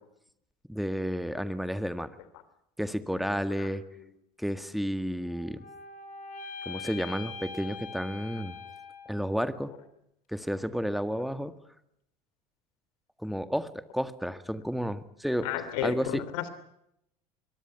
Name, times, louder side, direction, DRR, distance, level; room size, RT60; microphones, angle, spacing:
voice 1, 0.7-2.1 2.8-3.8 4.4-5.6 6.7-8.6 9.1-9.7 10.3-11.5 13.2-15.5 15.8-16.2, equal, ahead, 11 dB, 1.7 m, -31 dB
voice 2, 3.6-4.0 15.4-16.5, left 11 dB, 65° left, 13 dB, 3.1 m, -34 dB
sound 1, 5.2-9.5, left 4 dB, 45° left, 5.8 m, -43 dB
24.5 x 22.0 x 5.8 m, 0.75 s
figure-of-eight pair, 70°, 20 cm